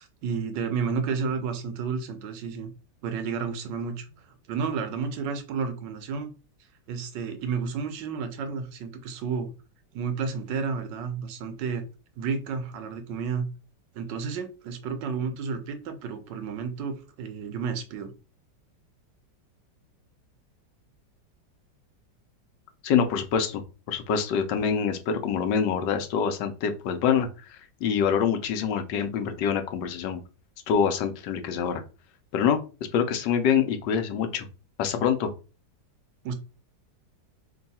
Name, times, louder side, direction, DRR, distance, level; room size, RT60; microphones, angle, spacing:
voice 1, 0.0-2.7 3.0-6.3 6.9-9.5 9.9-11.8 12.2-13.5 13.9-18.1 36.2-36.3, right 5 dB, 90° right, 8 dB, 1.4 m, -31 dB
voice 2, 22.8-23.6 23.9-30.2 30.7-31.8 32.3-32.6 32.9-34.4 34.8-35.3, left 7 dB, 85° left, 7 dB, 1.3 m, -25 dB
3.7 x 2.3 x 4.1 m, 0.33 s
omnidirectional pair, 1.9 m